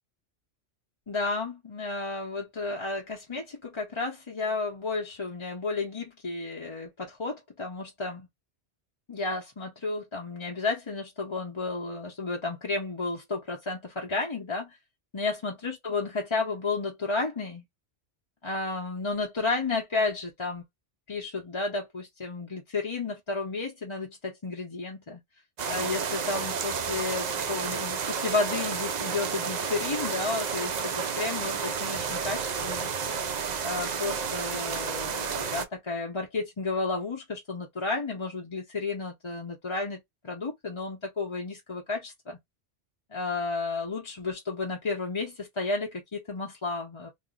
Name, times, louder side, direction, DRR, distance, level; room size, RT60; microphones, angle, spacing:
voice 1, 1.1-8.3 9.1-14.8 15.1-17.6 18.4-20.6 21.1-25.2 25.7-32.9 33.6-42.4 43.1-47.1, left 3 dB, 30° left, 0.7 m, -32 dB
sound 1, 25.6-35.6, right 6 dB, 55° right, 0.5 m, -31 dB
2.9 x 2.0 x 3.7 m
omnidirectional pair, 1.1 m